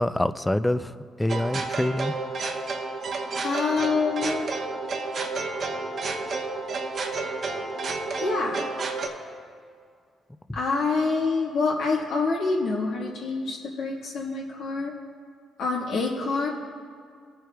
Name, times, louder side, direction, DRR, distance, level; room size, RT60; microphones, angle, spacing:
voice 1, 0.0-2.1, left 1 dB, 10° left, 13 dB, 0.4 m, -26 dB
sound 1, 1.3-9.1, right 3 dB, 55° right, 1.1 m, -31 dB
voice 2, 3.4-4.5 8.2-8.7 10.5-14.9 15.6-16.5, left 4 dB, 80° left, -4 dB, 1.4 m, -26 dB
20.5 x 7.8 x 2.3 m, 2.1 s
cardioid pair, 90°, 0 cm